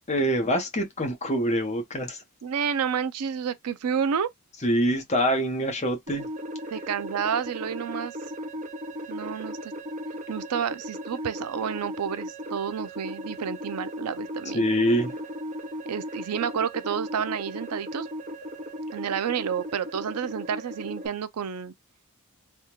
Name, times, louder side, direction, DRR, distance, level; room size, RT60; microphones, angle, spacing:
voice 1, 0.1-2.2 4.6-6.3 14.5-15.1, equal, 30° left, 1.0 m, -25 dB
voice 2, 2.4-4.3 6.7-8.1 9.1-9.7 10.3-14.7 15.9-18.1 18.9-21.7, right 7 dB, 85° right, 0.4 m, -30 dB
sound 1, 6.1-21.1, equal, 35° right, 0.5 m, -37 dB
3.5 x 2.3 x 2.9 m
head